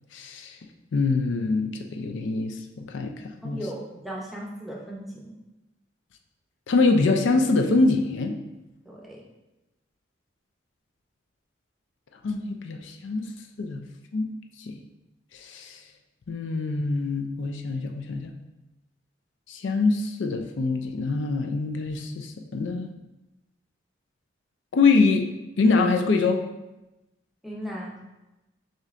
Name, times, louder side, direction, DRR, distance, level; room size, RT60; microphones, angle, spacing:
voice 1, 0.1-0.6 0.9-3.1 3.4-3.6 6.7-8.3 12.2-13.2 13.6-13.8 14.1-14.3 14.6-14.8 15.3-15.8 16.3-18.3 19.5-22.9 24.7-25.3 25.6-26.4, left 3 dB, 75° left, 4 dB, 0.4 m, -24 dB
voice 2, 3.4-5.3 8.9-9.2 27.4-28.0, equal, ahead, -4 dB, 0.6 m, -36 dB
6.4 x 2.8 x 2.5 m, 0.99 s
head